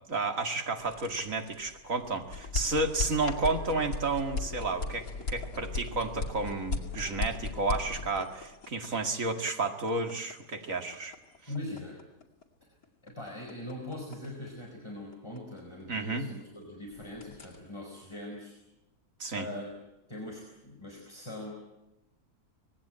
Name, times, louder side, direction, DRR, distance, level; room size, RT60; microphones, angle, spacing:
voice 1, 0.1-11.1 15.9-16.3 19.2-19.5, right 3 dB, 55° right, 5 dB, 2.6 m, -31 dB
sound 1, 0.8-16.6 16.9-17.6, left 4 dB, 60° left, 2.9 m, -38 dB
voice 2, 11.5-12.0 13.0-18.6 19.3-19.7 20.1-21.8, left 1 dB, 15° left, -2 dB, 4.7 m, -41 dB
25.5 x 19.5 x 8.9 m, 0.97 s
omnidirectional pair, 1.7 m